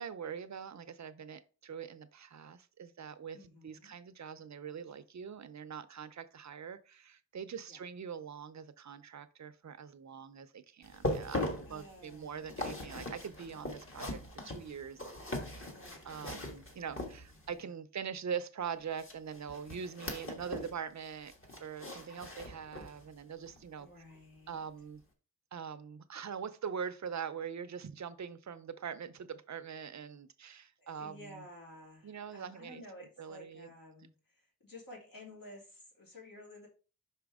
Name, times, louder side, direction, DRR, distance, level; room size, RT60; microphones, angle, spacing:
voice 1, 0.0-3.4 3.6-11.4 11.7-15.7 16.0-21.3 21.6-23.9 24.5-25.0 25.5-31.4 32.0-32.8 33.2-33.7, right 7 dB, 50° right, 0.5 m, -43 dB
voice 2, 3.3-3.9 7.6-7.8 11.7-12.7 15.7-16.2 16.9-17.8 23.8-24.7 30.8-36.7, left 1 dB, 70° left, 2.8 m, -53 dB
sound 1, 10.8-17.6 19.0-20.8 21.1-23.0 23.5-23.6 24.1-24.2, left 1 dB, 35° left, 1.4 m, -40 dB
5.7 x 5.0 x 3.5 m
wide cardioid pair, 125°, 36 cm